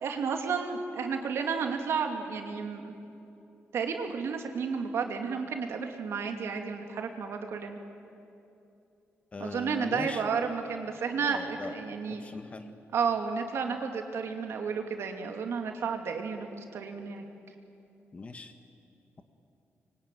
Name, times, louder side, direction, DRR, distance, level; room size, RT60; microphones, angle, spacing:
voice 1, 0.0-2.9 3.7-7.8 9.4-12.2 12.9-17.3, right 5 dB, 70° right, 4 dB, 2.6 m, -32 dB
voice 2, 9.3-10.2 11.2-11.7 12.2-12.7 18.1-18.5, left 3 dB, 30° left, 8 dB, 1.5 m, -39 dB
25.5 x 23.5 x 9.1 m, 2.8 s
wide cardioid pair, 145°, 5 cm